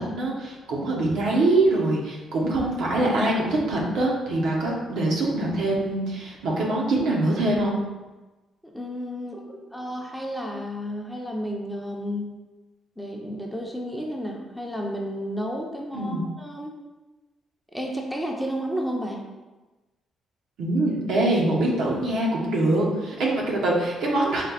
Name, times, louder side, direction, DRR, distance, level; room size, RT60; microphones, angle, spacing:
voice 1, 0.0-7.8 15.9-16.2 20.6-24.4, right 2 dB, 80° right, -3 dB, 1.0 m, -24 dB
voice 2, 8.6-12.3 13.0-16.8 17.7-19.2, equal, 5° left, 0 dB, 0.6 m, -32 dB
4.2 x 2.3 x 4.1 m, 1.2 s
cardioid pair, 90°, 0 cm